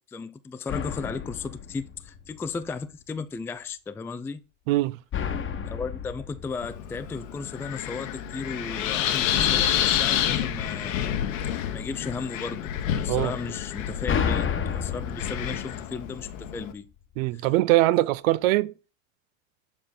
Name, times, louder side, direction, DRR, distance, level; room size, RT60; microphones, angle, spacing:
voice 1, 0.0-4.4 5.7-11.0 11.5-16.9 17.3-17.5, left 4 dB, 5° left, 0.3 m, -35 dB
sound 1, 0.7-2.6 5.1-7.5 9.4-11.6 13.6-16.6, left 7 dB, 30° left, 1.1 m, -32 dB
voice 2, 4.7-5.0 13.1-13.3 17.2-18.7, right 18 dB, 75° right, 0.6 m, -22 dB
Wind, 6.6-16.7, left 10 dB, 70° left, 1.1 m, -29 dB
7.4 x 4.3 x 3.9 m
hypercardioid pair, 95°, 40 cm